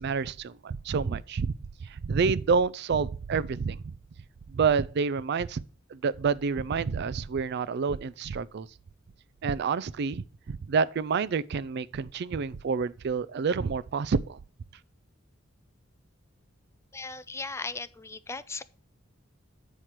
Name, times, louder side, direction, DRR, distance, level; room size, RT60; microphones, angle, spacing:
voice 1, 0.0-1.5 2.0-3.9 4.5-5.6 5.9-8.7 9.4-14.4, right 5 dB, 55° right, 0.4 m, -28 dB
voice 2, 16.9-18.6, left 3 dB, 15° left, 0.4 m, -37 dB
8.2 x 4.6 x 5.8 m
head